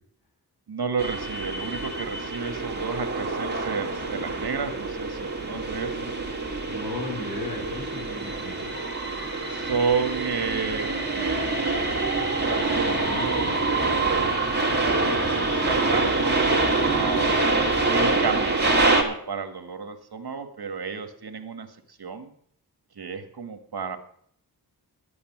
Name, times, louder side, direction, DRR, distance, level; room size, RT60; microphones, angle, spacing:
voice 1, 0.7-6.1 9.5-11.6 12.4-13.5 14.8-17.4 17.8-22.3 22.9-24.0, right 5 dB, 70° right, 9 dB, 1.6 m, -32 dB
sound 1, 1.0-19.0, right 3 dB, 25° right, 2.3 m, -25 dB
voice 2, 6.7-8.7 12.6-13.6, left 2 dB, 70° left, -2 dB, 6.1 m, -36 dB
11.5 x 8.7 x 7.3 m, 0.65 s
wide cardioid pair, 90°, 39 cm